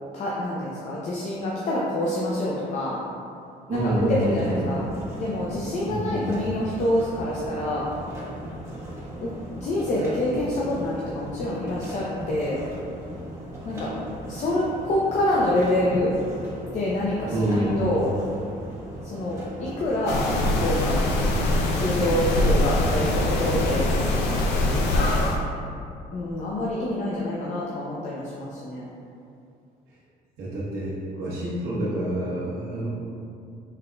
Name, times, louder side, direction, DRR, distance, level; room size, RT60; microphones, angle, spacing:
voice 1, 0.1-3.0 3.7-4.8 5.2-7.9 9.2-9.3 9.6-12.6 13.6-13.9 14.3-16.2 16.7-18.1 19.0-21.0 21.7-23.9 24.7-25.1 26.1-28.9, left 1 dB, 45° left, -5 dB, 0.6 m, -26 dB
sound 1, 3.7-23.4, equal, 15° right, 1.2 m, -38 dB
voice 2, 3.7-4.7 5.8-6.3 17.2-18.0 30.4-32.9, right 1 dB, 70° right, -9 dB, 1.1 m, -27 dB
sound 2, 20.1-25.4, left 1 dB, 90° left, 0.6 m, -23 dB
5.6 x 3.7 x 2.2 m, 2.5 s
cardioid pair, 110°, 17 cm